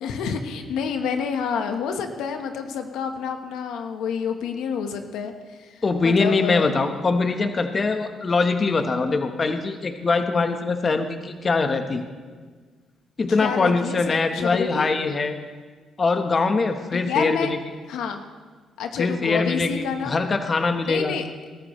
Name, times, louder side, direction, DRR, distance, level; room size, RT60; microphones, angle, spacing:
voice 1, 0.0-6.7 13.4-14.9 16.9-17.5 17.9-18.2 18.8-20.2 20.8-21.3, left 6 dB, 85° left, 6 dB, 1.1 m, -28 dB
voice 2, 5.8-12.0 13.2-15.4 16.0-17.6 19.0-21.2, left 3 dB, 35° left, 7 dB, 1.1 m, -23 dB
20.5 x 13.0 x 3.1 m, 1.5 s
cardioid pair, 90°, 0 cm